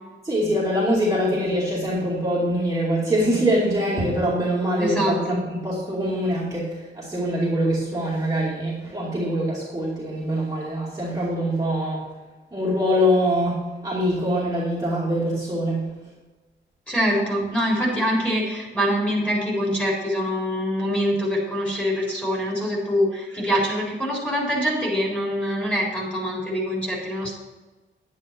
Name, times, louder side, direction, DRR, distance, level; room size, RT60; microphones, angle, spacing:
voice 1, 0.2-12.0 12.5-15.9, equal, 15° right, -8 dB, 2.5 m, -24 dB
voice 2, 4.8-5.4 16.9-27.3, equal, 5° left, -3 dB, 3.8 m, -24 dB
10.5 x 9.3 x 4.6 m, 1.2 s
wide cardioid pair, 150°, 20 cm